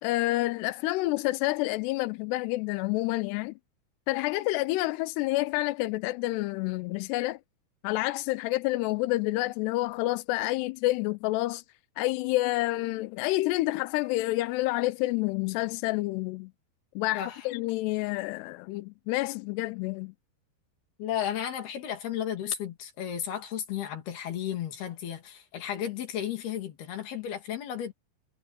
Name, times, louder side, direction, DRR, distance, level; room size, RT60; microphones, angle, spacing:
voice 1, 0.0-3.6 4.1-7.4 7.8-11.6 12.0-16.5 17.0-20.1, left 19 dB, 90° left, 2.7 m, -28 dB
voice 2, 17.1-17.5 21.0-27.9, left 10 dB, 70° left, 4.6 m, -33 dB
omnidirectional pair, 4.8 m